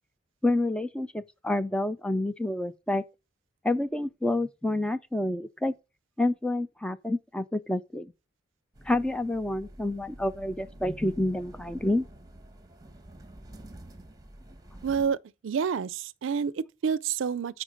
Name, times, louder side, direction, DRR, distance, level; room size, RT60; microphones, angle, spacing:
voice 1, 0.4-3.0 3.6-5.7 6.2-8.1 8.9-12.1, left 1 dB, 5° left, 0.4 m, -28 dB
sound 1, 8.7-15.1, right 1 dB, 20° right, 1.2 m, -48 dB
voice 2, 14.8-15.2 15.4-17.6, right 6 dB, 75° right, 0.4 m, -28 dB
9.9 x 4.6 x 5.1 m
head